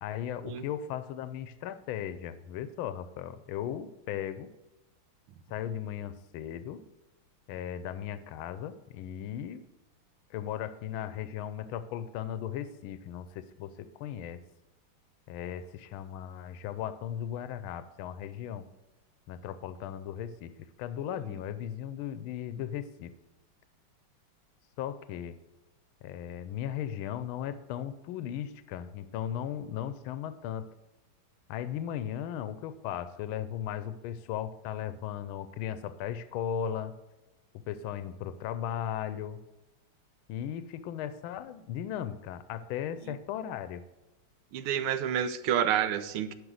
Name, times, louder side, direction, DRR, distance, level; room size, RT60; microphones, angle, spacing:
voice 1, 0.0-4.5 5.5-6.8 7.5-9.6 10.3-14.4 15.3-18.7 19.3-23.1 24.8-25.4 26.0-30.7 31.5-36.9 37.7-39.4 40.3-43.8, left 10 dB, 85° left, 13 dB, 1.4 m, -37 dB
voice 2, 44.5-46.3, right 9 dB, 85° right, 12 dB, 1.6 m, -29 dB
11.0 x 5.2 x 6.4 m, 1.0 s
omnidirectional pair, 2.3 m